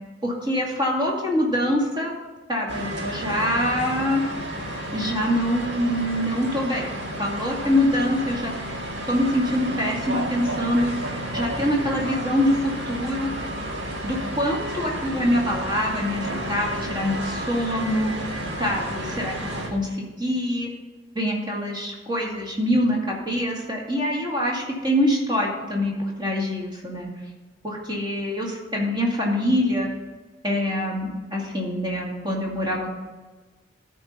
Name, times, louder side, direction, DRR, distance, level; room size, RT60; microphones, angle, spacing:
voice 1, 0.2-2.1 2.5-4.2 4.9-6.8 7.2-8.5 9.1-10.9 11.3-13.3 14.0-18.3 18.6-19.3 19.7-20.7 21.1-27.1 27.6-29.9 30.4-32.9, equal, 25° right, -3 dB, 2.3 m, -24 dB
sound 1, 2.7-19.7, right 1 dB, 65° right, 1.7 m, -31 dB
13.5 x 4.5 x 5.5 m, 1.3 s
head